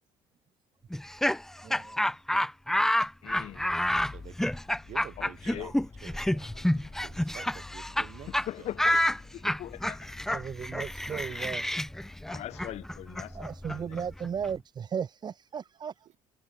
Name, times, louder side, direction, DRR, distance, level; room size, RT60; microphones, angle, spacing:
Laughter, 0.9-8.1 8.3-8.5 8.8-14.5, left 1 dB, 5° left, 0.9 m, -29 dB
voice 1, 1.6-2.0 10.3-11.7 13.3-15.9, right 7 dB, 35° right, 0.9 m, -36 dB
voice 2, 3.2-3.7 5.2-5.7 6.4-6.9 8.3-9.0 9.3-10.4 11.3-11.4 12.3-14.0, left 13 dB, 60° left, 0.9 m, -42 dB
sound 1, 3.3-12.8, left 4 dB, 20° left, 1.8 m, -50 dB
voice 3, 4.1-6.6 7.0-8.7 12.2-12.3 16.0-16.2, right 12 dB, 60° right, 5.2 m, -49 dB
cardioid pair, 120°, 13 cm